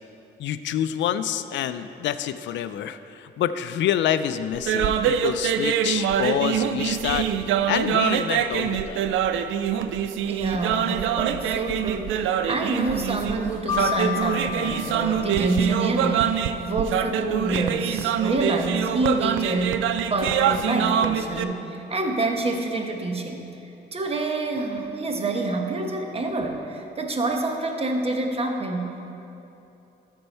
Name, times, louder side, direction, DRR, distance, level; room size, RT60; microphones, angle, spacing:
voice 1, 0.4-7.3 7.7-9.2, left 10 dB, 70° left, 12 dB, 0.4 m, -27 dB
sound 1, 4.5-21.4, right 9 dB, 80° right, 0.4 m, -25 dB
voice 2, 10.3-16.4 16.6-29.0, right 2 dB, 30° right, 3 dB, 1.0 m, -27 dB
Mallet percussion, 13.7-16.4, left 9 dB, 20° left, 0.9 m, -32 dB
13.0 x 4.5 x 4.4 m, 3.0 s
cardioid pair, 90°, 20 cm